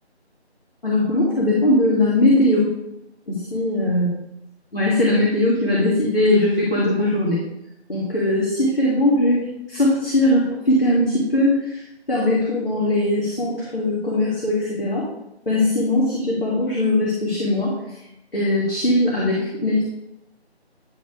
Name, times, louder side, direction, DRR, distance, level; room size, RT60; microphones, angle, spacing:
voice 1, 0.8-2.7 3.3-4.1 4.7-7.4 7.9-11.8 12.1-15.0 15.5-17.7 18.3-19.8, left 1 dB, 60° left, -6 dB, 2.1 m, -20 dB
10.5 x 6.4 x 2.4 m, 0.87 s
figure-of-eight pair, 165°, 33 cm